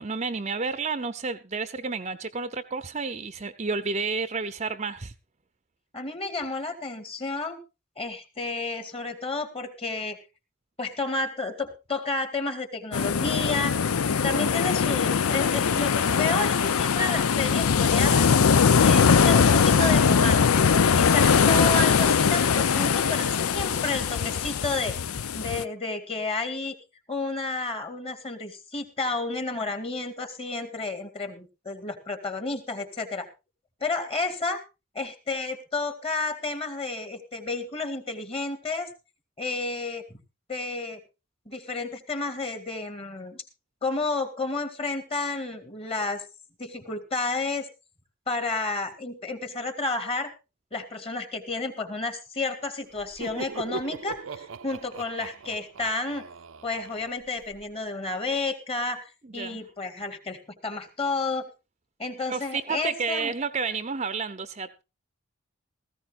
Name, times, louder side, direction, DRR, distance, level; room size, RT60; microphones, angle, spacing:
voice 1, 0.0-5.1 59.3-59.6 62.3-64.8, right 4 dB, 30° right, 0.7 m, -31 dB
voice 2, 5.9-7.6 8.0-10.2 10.8-13.8 14.2-18.3 18.8-20.6 20.9-25.0 25.4-26.7 27.1-33.3 33.8-34.6 35.0-38.9 39.4-40.2 40.5-41.0 41.5-43.4 43.8-46.2 46.6-47.7 48.3-50.3 50.7-56.2 56.6-61.5 62.0-63.3, left 3 dB, 25° left, 2.0 m, -31 dB
sound 1, 12.9-25.6, left 6 dB, 85° left, 0.6 m, -21 dB
Laughter, 52.9-57.6, right 4 dB, 70° right, 0.6 m, -40 dB
17.5 x 15.0 x 2.5 m
head